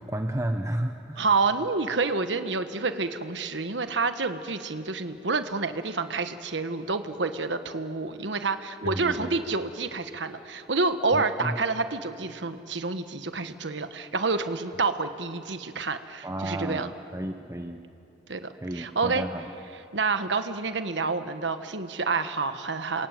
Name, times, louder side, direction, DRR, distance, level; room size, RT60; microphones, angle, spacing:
voice 1, 0.0-1.3 8.8-9.3 11.1-11.6 16.2-17.9 18.6-19.5, right 1 dB, 15° right, 6 dB, 0.8 m, -32 dB
voice 2, 1.2-16.9 18.3-19.2 19.9-23.1, right 4 dB, 80° right, 9 dB, 1.3 m, -28 dB
28.5 x 21.5 x 9.3 m, 2.7 s
head